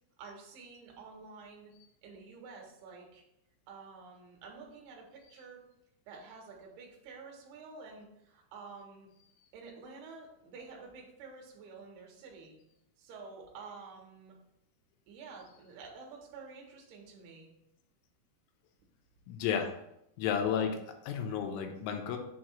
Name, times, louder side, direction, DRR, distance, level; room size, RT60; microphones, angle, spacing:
voice 1, 0.2-1.7 2.0-3.2 3.7-5.6 6.1-9.1 9.5-12.6 13.0-14.4 15.1-17.5, right 4 dB, 70° right, -1 dB, 2.7 m, -50 dB
voice 2, 19.3-19.7 20.2-22.2, left 8 dB, 80° left, 4 dB, 3.0 m, -32 dB
7.5 x 2.6 x 5.8 m, 0.81 s
omnidirectional pair, 5.8 m